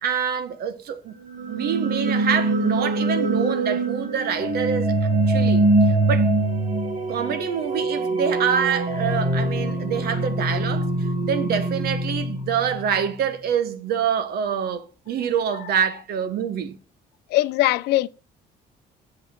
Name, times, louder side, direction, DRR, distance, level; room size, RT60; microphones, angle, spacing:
voice 1, 0.0-1.1 1.5-6.3 7.1-10.9 11.2-16.8, right 8 dB, 70° right, 1.5 m, -26 dB
sound 1, 1.2-13.1, right 2 dB, 45° right, 2.1 m, -23 dB
voice 2, 17.3-18.1, left 16 dB, 80° left, 0.6 m, -21 dB
8.4 x 5.6 x 6.5 m
cardioid pair, 110°, 17 cm